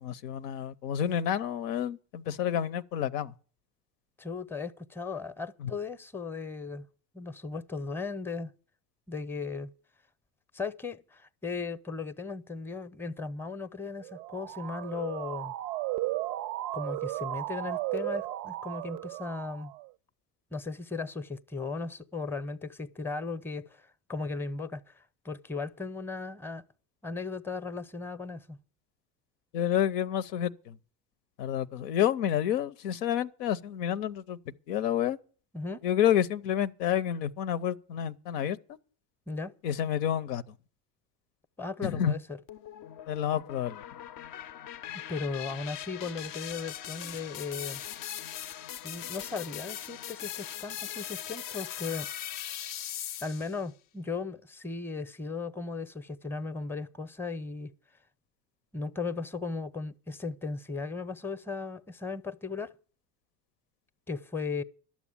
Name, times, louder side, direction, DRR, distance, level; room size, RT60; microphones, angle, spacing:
voice 1, 0.0-3.3 5.6-5.7 29.5-30.8 31.4-34.4 34.7-35.2 35.8-38.8 39.6-40.4 41.8-42.1 43.1-43.8, left 10 dB, 85° left, 0.6 m, -29 dB
voice 2, 4.2-6.9 7.1-8.5 9.1-9.7 10.5-15.5 16.7-19.7 20.5-26.6 27.0-28.6 35.5-35.8 39.3-39.5 41.6-42.4 45.1-47.8 48.8-52.1 53.2-57.7 58.7-62.8 64.1-64.6, left 4 dB, 5° left, 0.6 m, -36 dB
Motor vehicle (road) / Siren, 14.0-19.9, right 16 dB, 85° right, 0.5 m, -35 dB
sound 1, 42.5-53.6, left 11 dB, 45° left, 0.5 m, -40 dB
12.0 x 7.2 x 8.6 m
hypercardioid pair, 65°, 47 cm